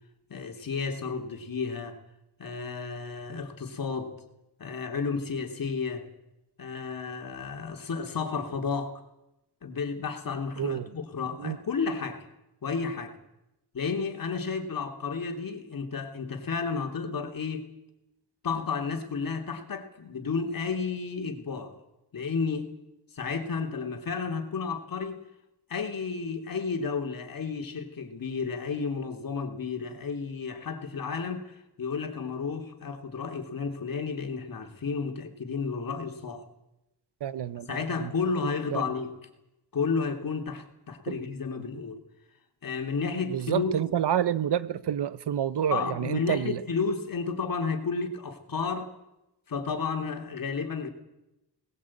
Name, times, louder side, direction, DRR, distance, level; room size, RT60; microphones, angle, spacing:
voice 1, 0.3-2.0 2.4-4.1 4.6-6.1 6.6-8.9 9.6-12.2 12.6-13.1 13.7-17.7 18.4-21.7 22.1-22.7 23.1-25.2 25.7-36.5 37.7-39.1 39.7-42.0 42.6-43.7 45.7-48.9 49.5-50.9, left 5 dB, 55° left, 3.2 m, -32 dB
voice 2, 10.6-10.9 11.4-11.6 37.2-38.1 38.7-38.8 41.1-41.2 43.2-46.6, right 10 dB, 80° right, 1.0 m, -29 dB
21.5 x 20.0 x 8.7 m
wide cardioid pair, 140°, 40 cm